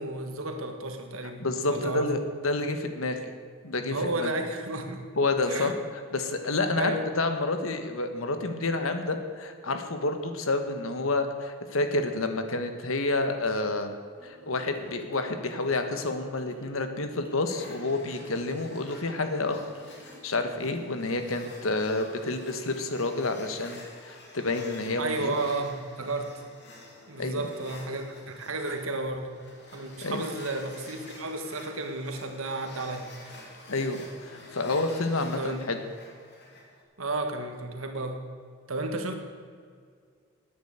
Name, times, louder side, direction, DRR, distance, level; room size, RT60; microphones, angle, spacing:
voice 1, 0.0-2.1 3.9-5.0 5.5-5.7 6.8-7.1 25.0-26.4 27.1-29.3 29.7-33.3 35.4-35.6 37.0-38.2 38.7-39.1, right 2 dB, 75° right, 5 dB, 1.6 m, -32 dB
voice 2, 1.4-3.3 3.6-4.3 5.2-5.7 6.1-13.9 14.2-19.7 20.2-25.3 27.2-27.4 30.0-30.2 33.7-35.8, left 2 dB, 75° left, 7 dB, 1.3 m, -29 dB
sound 1, 14.2-21.1, left 1 dB, 10° right, 2.2 m, -53 dB
sound 2, 17.5-36.8, left 2 dB, 55° left, 2.6 m, -49 dB
11.0 x 9.2 x 8.1 m, 2.1 s
head